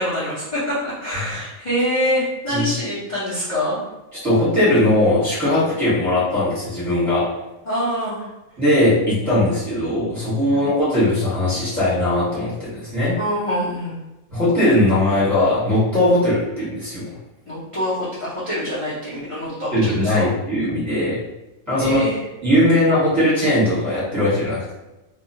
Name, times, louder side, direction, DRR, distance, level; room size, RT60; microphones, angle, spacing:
voice 1, 0.0-3.8 7.6-8.3 10.5-10.7 13.2-14.0 17.5-20.3 21.8-22.2, equal, 35° left, -11 dB, 0.5 m, -25 dB
voice 2, 4.2-7.3 8.6-13.2 14.3-17.1 19.7-21.2 21.7-22.0 22.4-24.7, left 1 dB, 15° right, -11 dB, 1.0 m, -19 dB
2.2 x 2.2 x 2.7 m, 0.97 s
omnidirectional pair, 1.4 m